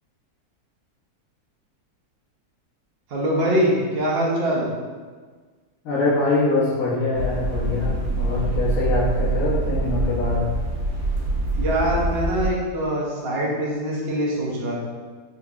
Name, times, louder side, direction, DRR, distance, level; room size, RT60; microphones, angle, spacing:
voice 1, 3.1-4.6 11.5-14.8, right 1 dB, 50° right, -4 dB, 0.8 m, -23 dB
voice 2, 5.8-10.4, left 2 dB, 75° left, -10 dB, 1.3 m, -23 dB
sound 1, 7.1-12.5, right 2 dB, 90° right, 1.3 m, -25 dB
3.9 x 2.8 x 2.3 m, 1.5 s
omnidirectional pair, 1.7 m